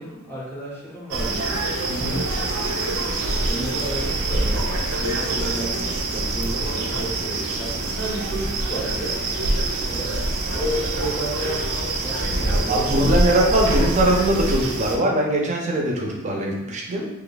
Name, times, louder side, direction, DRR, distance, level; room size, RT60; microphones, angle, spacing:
voice 1, 0.0-1.6 2.3-2.5 3.5-9.2 9.8-13.2, right 1 dB, 10° left, -5 dB, 0.6 m, -32 dB
sound 1, 1.1-15.0, right 2 dB, 75° right, 0.5 m, -25 dB
voice 2, 1.9-2.2 12.7-17.1, right 1 dB, 30° right, -1 dB, 0.5 m, -21 dB
3.1 x 2.3 x 3.9 m, 1.0 s
head